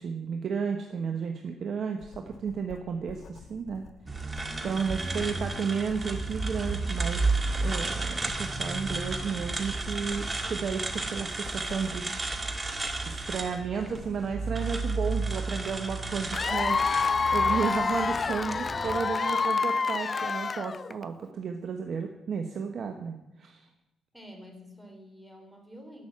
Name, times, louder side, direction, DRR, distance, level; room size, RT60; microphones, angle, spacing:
voice 1, 0.0-3.8 4.6-7.3 7.6-12.1 13.1-23.7, right 6 dB, 55° right, 5 dB, 1.1 m, -33 dB
Writing, 2.0-17.6, left 6 dB, 50° left, 1.3 m, -50 dB
sound 1, 4.1-19.0, right 3 dB, 25° right, 1.8 m, -32 dB
Cheering / Applause / Crowd, 16.3-21.0, left 4 dB, 35° left, 0.3 m, -27 dB
voice 2, 24.1-26.0, equal, 5° right, 3 dB, 3.3 m, -48 dB
14.0 x 6.3 x 8.7 m, 0.94 s
cardioid pair, 90°, 0 cm